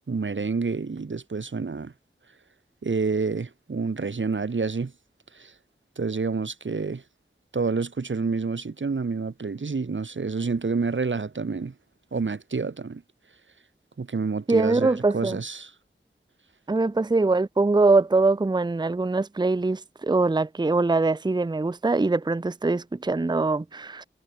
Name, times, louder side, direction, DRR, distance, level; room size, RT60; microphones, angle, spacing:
voice 1, 0.1-1.9 2.8-4.9 5.3-5.5 6.0-7.0 7.5-11.7 12.1-13.0 14.0-15.7, right 4 dB, 80° right, 1.1 m, -28 dB
voice 2, 14.5-15.4 16.7-24.0, right 3 dB, 25° right, 0.5 m, -23 dB
wide cardioid pair, 50°, 19 cm